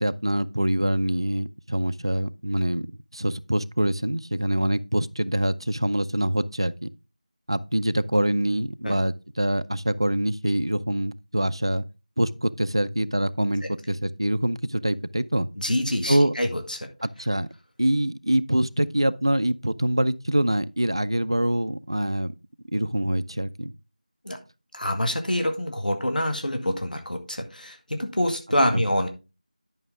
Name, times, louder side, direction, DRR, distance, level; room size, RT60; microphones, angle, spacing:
voice 1, 0.0-2.8 3.1-6.9 7.5-11.8 12.2-15.5 16.1-16.3 17.0-17.5 17.8-22.3 22.7-23.7 28.7-28.8, right 1 dB, 35° right, 0.4 m, -25 dB
voice 2, 15.6-16.9 24.3-24.4 24.7-29.1, left 1 dB, 85° left, 2.0 m, -26 dB
10.5 x 5.8 x 3.6 m
figure-of-eight pair, 180°, 4 cm